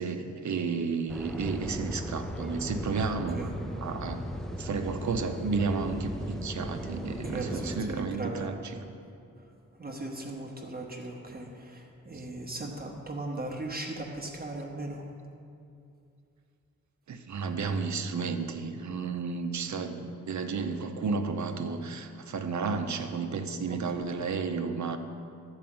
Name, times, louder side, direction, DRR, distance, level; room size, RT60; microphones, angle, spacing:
voice 1, 0.0-4.2 4.5-8.9 12.1-12.2 17.1-25.0, right 4 dB, 65° right, 6 dB, 0.8 m, -32 dB
sound 1, 1.1-7.8, equal, ahead, 0.5 m, -37 dB
voice 2, 7.1-8.5 9.4-9.5 9.8-15.1 23.7-23.8, right 2 dB, 30° right, 0 dB, 0.9 m, -38 dB
12.5 x 4.9 x 7.7 m, 2.5 s
wide cardioid pair, 160°, 31 cm